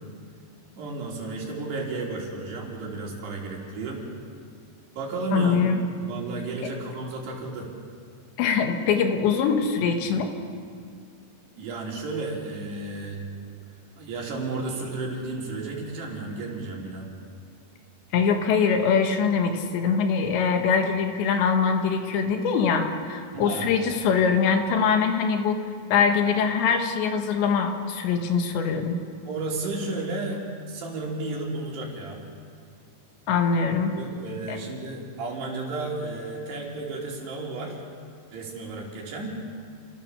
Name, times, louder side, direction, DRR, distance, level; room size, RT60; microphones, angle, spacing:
voice 1, 0.8-4.0 5.0-5.6 6.0-7.7 11.6-13.2 14.0-17.1 23.3-23.7 29.2-30.4 30.7-32.2 34.0-37.8 38.3-39.4, right 3 dB, 70° right, -2 dB, 5.4 m, -33 dB
voice 2, 5.3-5.8 8.4-10.3 18.1-25.6 25.9-29.0 33.3-33.9 34.5-34.6, left 6 dB, 80° left, 4 dB, 3.8 m, -23 dB
29.5 x 15.5 x 7.0 m, 2.1 s
omnidirectional pair, 5.1 m